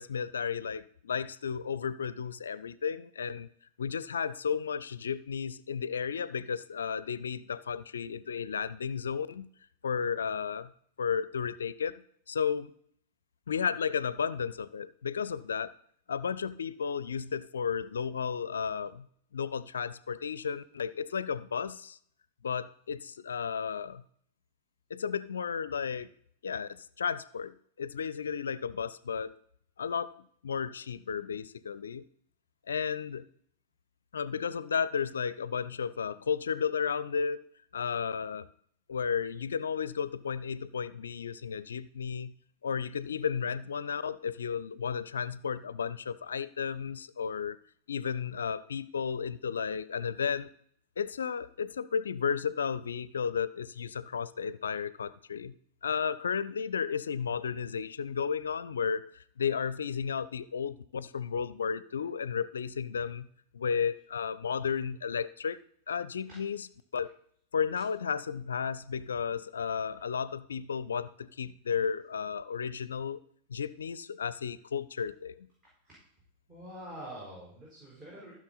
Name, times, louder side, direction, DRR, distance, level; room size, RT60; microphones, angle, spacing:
voice 1, 0.0-3.5 3.8-9.5 9.8-10.7 11.0-12.0 12.3-12.7 13.5-15.7 16.1-19.1 19.3-22.0 22.4-24.0 24.9-26.1 26.4-29.3 29.8-32.0 32.7-33.3 34.1-37.4 37.7-38.5 38.9-42.3 42.6-47.6 47.9-50.5 51.0-55.5 55.8-63.3 63.5-65.6 65.9-66.7 66.9-67.1 67.5-73.2 73.5-75.5, left 6 dB, 70° left, 17 dB, 0.4 m, -33 dB
voice 2, 76.5-78.3, equal, 30° right, -6 dB, 5.1 m, -45 dB
15.0 x 6.3 x 4.1 m, 0.64 s
figure-of-eight pair, 90°, 0 cm